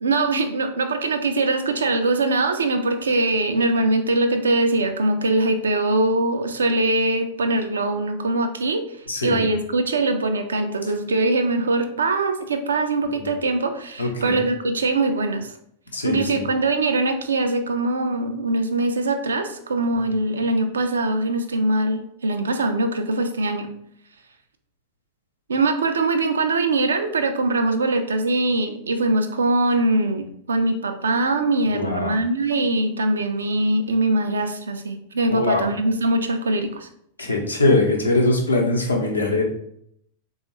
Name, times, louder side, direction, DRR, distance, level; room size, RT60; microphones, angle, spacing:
voice 1, 0.0-8.8 9.2-15.5 16.0-23.7 25.5-36.9, right 2 dB, 70° right, 6 dB, 0.4 m, -22 dB
voice 2, 9.1-9.4 13.2-13.3 14.0-14.4 15.9-16.4 31.7-32.1 35.3-35.7 37.2-39.4, left 2 dB, 80° left, 0 dB, 0.7 m, -22 dB
3.6 x 2.3 x 2.9 m, 0.71 s
figure-of-eight pair, 90°, 0 cm